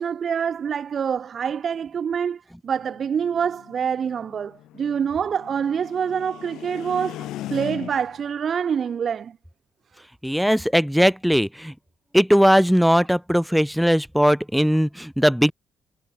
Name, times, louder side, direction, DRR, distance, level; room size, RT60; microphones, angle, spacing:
voice 1, 0.0-9.3, right 7 dB, 55° right, 0.6 m, -26 dB
sound 1, 2.8-8.3, left 14 dB, 85° left, 2.2 m, -39 dB
voice 2, 10.2-11.7 12.1-15.5, equal, ahead, 1.1 m, -19 dB
cardioid pair, 90°, 0 cm